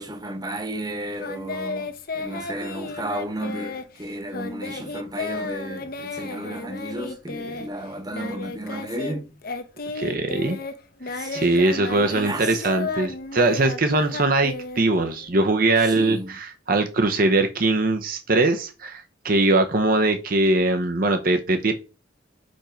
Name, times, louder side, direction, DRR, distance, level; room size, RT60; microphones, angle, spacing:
voice 1, 0.0-9.3 11.1-11.5 12.0-12.6 15.8-16.3, right 1 dB, 20° right, 0.9 m, -33 dB
Singing, 1.2-9.2 9.4-15.3, left 3 dB, 50° left, 0.8 m, -33 dB
voice 2, 9.9-10.6 11.3-21.7, right 2 dB, 45° right, 0.7 m, -21 dB
5.2 x 4.4 x 5.0 m
head